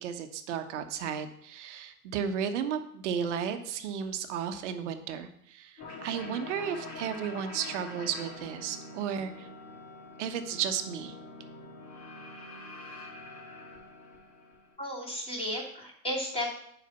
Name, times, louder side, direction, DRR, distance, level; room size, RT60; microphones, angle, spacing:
voice 1, 0.0-9.5 10.2-11.2, right 8 dB, 50° right, 8 dB, 1.1 m, -34 dB
sound 1, 5.8-14.8, left 2 dB, 45° left, 3.1 m, -45 dB
voice 2, 14.8-16.5, left 1 dB, 10° left, -3 dB, 2.7 m, -34 dB
7.4 x 5.0 x 5.6 m, 0.73 s
figure-of-eight pair, 100°, 45 cm